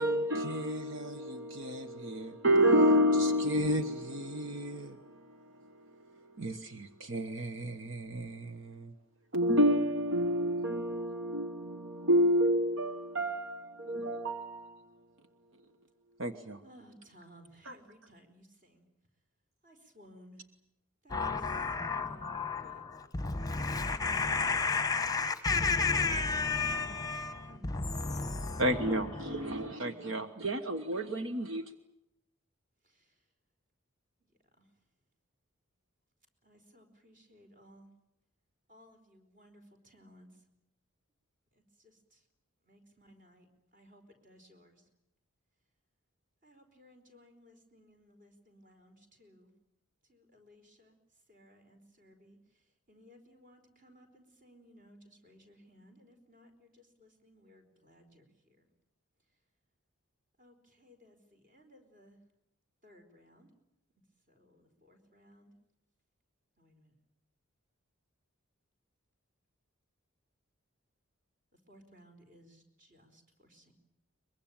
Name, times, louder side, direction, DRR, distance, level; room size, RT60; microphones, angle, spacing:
voice 1, 0.0-8.9 9.3-14.8 16.2-16.6 17.6-17.7 28.6-31.6, equal, 60° right, 1.2 m, -30 dB
voice 2, 16.6-18.9 19.6-20.4 21.0-21.5 21.8-22.9 27.4-27.7 29.3-30.0 32.8-33.2 34.2-34.3 34.6-34.7 36.4-37.9 38.7-40.4 41.5-42.2 42.6-43.5 43.7-44.8 46.4-49.5 50.1-51.0 51.3-58.7 60.4-62.2 62.8-63.5 64.3-65.5 66.6-66.9 71.5-73.7, equal, 40° right, 4.6 m, -59 dB
voice 3, 21.1-29.7, left 4 dB, 15° left, 1.1 m, -32 dB
23.5 x 22.0 x 9.0 m
head